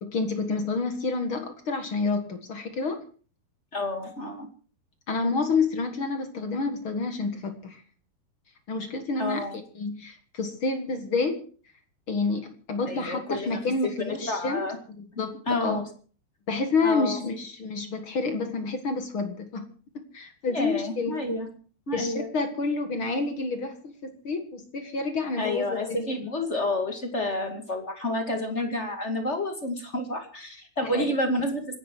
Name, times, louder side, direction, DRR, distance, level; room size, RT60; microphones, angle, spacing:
voice 1, 0.0-3.0 5.1-7.8 8.7-9.5 9.8-11.4 12.1-14.7 15.0-15.8 16.5-21.2 21.9-26.1 30.8-31.1, left 3 dB, 45° left, 7 dB, 1.8 m, -29 dB
voice 2, 3.7-4.5 9.1-9.6 12.9-14.8 15.1-15.8 16.8-17.2 20.5-21.5 21.9-22.3 25.4-31.8, left 1 dB, 25° left, 5 dB, 1.5 m, -30 dB
26.0 x 10.5 x 4.6 m, 0.40 s
omnidirectional pair, 4.7 m